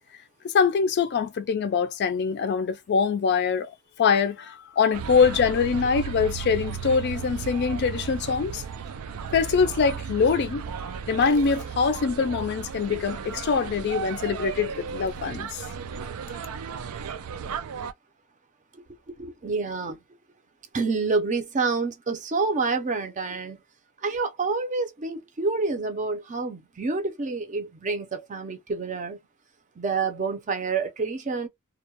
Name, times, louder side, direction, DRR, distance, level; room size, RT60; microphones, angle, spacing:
voice 1, 0.5-3.7 4.0-8.6 9.3-10.6 11.1-15.5, left 5 dB, 50° left, 0.3 m, -23 dB
sound 1, 4.9-17.9, right 7 dB, 90° right, 0.3 m, -35 dB
voice 2, 18.7-20.0 20.7-23.6 24.0-29.2 29.8-31.5, right 4 dB, 35° right, 0.5 m, -28 dB
2.2 x 2.1 x 2.8 m
head